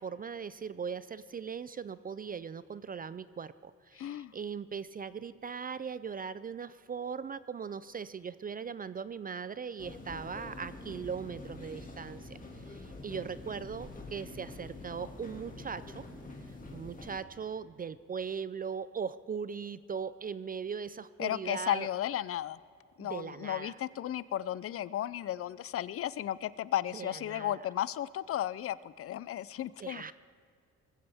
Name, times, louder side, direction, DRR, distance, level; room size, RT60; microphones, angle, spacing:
voice 1, 0.0-16.0 16.7-21.9 23.0-23.8 26.9-27.7 29.8-30.1, right 6 dB, 30° right, 15 dB, 0.4 m, -39 dB
voice 2, 3.9-4.3 21.2-22.6 23.0-30.1, left 12 dB, 50° left, 18 dB, 0.5 m, -34 dB
sound 1, 9.8-17.2, left 2 dB, 25° left, 2.2 m, -46 dB
20.0 x 15.0 x 3.5 m, 2.3 s
cardioid pair, 90°, 30 cm